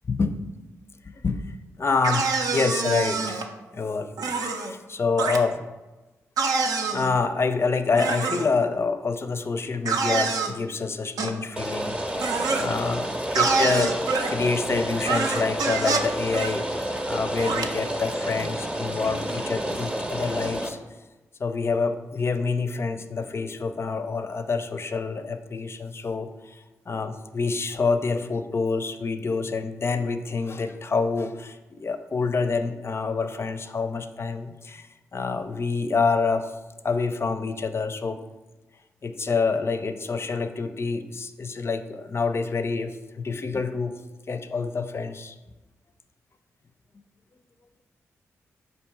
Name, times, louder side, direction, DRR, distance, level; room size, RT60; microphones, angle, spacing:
voice 1, 1.0-1.5 1.8-3.4 3.7-4.1 4.5-5.6 6.9-12.0 12.2-14.0 14.3-20.8 21.4-26.6 26.9-36.5 36.8-38.2 39.0-44.0 44.3-45.3, left 4 dB, 40° left, 9 dB, 0.4 m, -27 dB
sound 1, 2.0-3.5 4.2-4.7 5.2-5.4 6.4-7.1 8.0-8.5 9.9-10.5 11.2-11.3 12.2-12.7 13.3-14.3 15.1-16.1 16.3-16.5 17.4-17.7, right 4 dB, 70° right, 0.5 m, -26 dB
Rain, 11.6-20.7, right 1 dB, 15° right, 0.7 m, -30 dB
4.3 x 2.7 x 4.5 m, 1.1 s
supercardioid pair, 40°, 6 cm